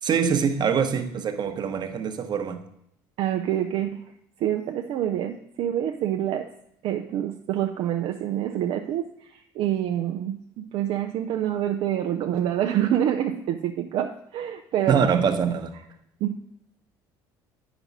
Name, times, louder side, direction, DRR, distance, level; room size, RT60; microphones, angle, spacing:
voice 1, 0.0-2.6 14.9-15.7, right 6 dB, 45° right, 7 dB, 1.0 m, -24 dB
voice 2, 3.2-4.0 4.4-6.5 6.8-15.2 16.2-16.4, right 11 dB, 65° right, 4 dB, 0.5 m, -27 dB
8.8 x 6.0 x 4.1 m, 0.75 s
hypercardioid pair, 75°, 10 cm